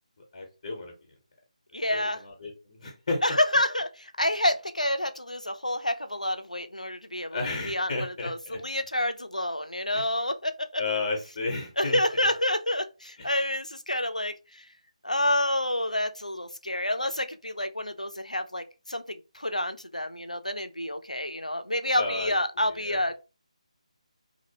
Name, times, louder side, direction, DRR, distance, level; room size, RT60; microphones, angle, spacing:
voice 1, 0.3-0.9 1.9-3.2 7.3-8.6 9.9-10.1 10.8-12.0 13.2-13.3 22.0-23.0, left 3 dB, 35° left, 0.6 m, -33 dB
voice 2, 1.7-2.2 3.2-7.4 7.6-10.8 11.8-14.6 15.0-23.2, left 1 dB, 90° left, 0.4 m, -28 dB
2.5 x 2.0 x 2.7 m
figure-of-eight pair, 150°, 4 cm